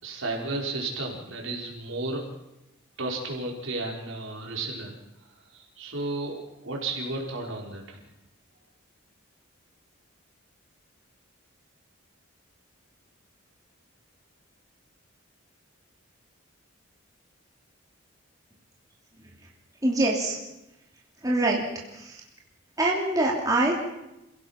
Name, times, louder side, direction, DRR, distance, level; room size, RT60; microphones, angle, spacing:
voice 1, 0.0-2.2 3.0-5.0 5.5-8.0, right 2 dB, 70° right, 0 dB, 4.9 m, -33 dB
voice 2, 19.8-20.4 21.2-22.2 22.8-23.8, right 2 dB, 15° right, -2 dB, 2.8 m, -25 dB
28.5 x 16.5 x 5.9 m, 0.92 s
head